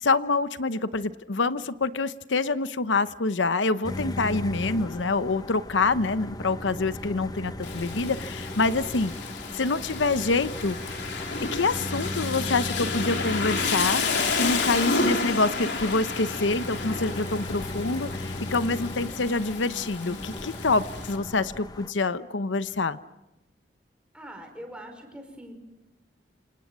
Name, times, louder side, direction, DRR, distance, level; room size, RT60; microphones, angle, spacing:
voice 1, 0.0-9.1 9.5-10.8 11.5-23.0, left 3 dB, 85° left, 13 dB, 0.9 m, -26 dB
sound 1, 3.8-21.9, left 1 dB, 20° left, 1.0 m, -37 dB
Rain, 7.6-21.2, left 4 dB, 70° left, 3.5 m, -31 dB
voice 2, 24.1-25.5, equal, 5° right, 4 dB, 5.2 m, -42 dB
28.0 x 27.5 x 7.5 m, 0.96 s
head